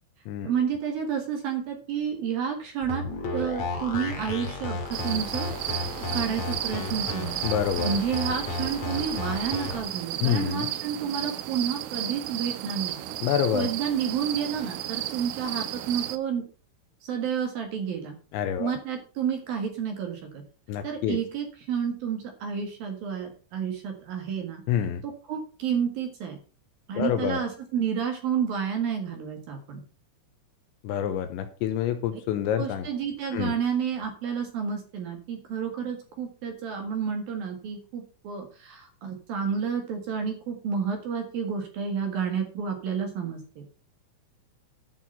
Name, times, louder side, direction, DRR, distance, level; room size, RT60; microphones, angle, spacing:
voice 1, 0.4-3.0 3.3-5.9 6.1-7.4 7.8-13.0 13.5-16.4 17.0-18.1 18.6-20.4 20.8-24.6 25.0-26.4 26.9-29.8 32.6-43.6, right 7 dB, 60° right, 4 dB, 2.9 m, -30 dB
sound 1, 2.8-9.8, left 3 dB, 45° left, 2.9 m, -33 dB
sound 2, 4.9-16.2, right 13 dB, 80° right, 3.2 m, -34 dB
voice 2, 7.4-7.9 10.2-10.7 13.2-13.7 18.3-18.7 20.7-21.2 24.7-25.0 26.9-27.4 30.8-32.9 33.3-33.6, left 10 dB, 80° left, 9 dB, 2.9 m, -27 dB
11.5 x 6.1 x 5.7 m, 0.37 s
omnidirectional pair, 5.8 m